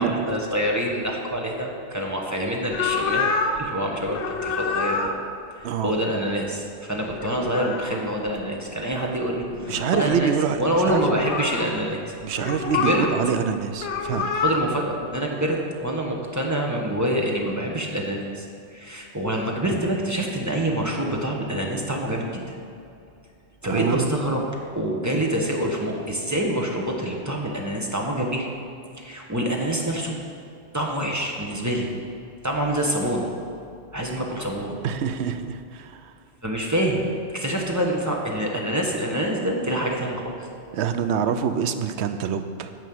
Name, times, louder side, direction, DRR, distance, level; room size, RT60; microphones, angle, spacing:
voice 1, 0.0-5.1 5.5-10.3 10.6-12.0 12.7-13.1 14.3-22.4 23.6-24.4 24.7-28.5 29.0-30.2 30.7-31.9 32.4-33.3 33.9-34.8 36.4-37.0 37.3-40.3, right 1 dB, 15° right, -1 dB, 1.1 m, -26 dB
sound 1, 2.7-3.6 4.1-5.1 7.1-8.0 8.9-9.0 9.4-10.1 10.9-11.7 12.4-13.1 13.7-14.6, left 5 dB, 80° left, 1.0 m, -27 dB
voice 2, 9.7-11.0 12.2-14.3 23.6-24.1 34.8-36.1 40.7-42.7, right 7 dB, 75° right, 9 dB, 0.9 m, -26 dB
9.1 x 5.3 x 7.8 m, 2.5 s
omnidirectional pair, 1.2 m